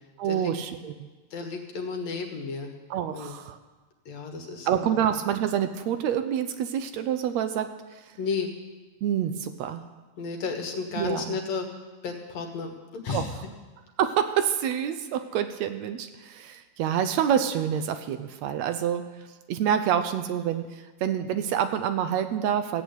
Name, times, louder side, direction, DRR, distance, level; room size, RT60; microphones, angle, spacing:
voice 1, 0.2-1.1 2.9-3.6 4.7-8.0 9.0-9.8 11.0-11.4 13.1-13.2 14.0-19.1 19.5-22.8, right 9 dB, 75° right, 9 dB, 1.9 m, -27 dB
voice 2, 1.3-2.7 3.1-3.3 4.1-5.1 8.2-8.5 10.2-11.7 12.0-13.4, left 4 dB, 65° left, 3 dB, 2.7 m, -33 dB
15.5 x 8.6 x 8.2 m, 1.3 s
omnidirectional pair, 3.3 m